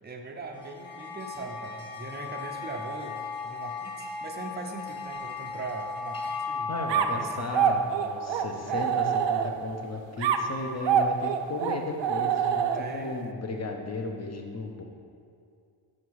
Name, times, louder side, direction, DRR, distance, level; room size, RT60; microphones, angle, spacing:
voice 1, 0.0-3.2 3.4-6.7 7.2-7.5 8.6-8.9 12.7-13.4, right 3 dB, 20° right, 2 dB, 0.7 m, -40 dB
sound 1, 0.6-9.2, left 4 dB, 10° left, 1.3 m, -37 dB
voice 2, 6.7-14.8, left 3 dB, 30° left, 3 dB, 0.8 m, -35 dB
sound 2, 6.9-9.8 10.2-13.1, right 8 dB, 60° right, 0.5 m, -26 dB
7.4 x 5.2 x 4.8 m, 2.4 s
wide cardioid pair, 110°, 50 cm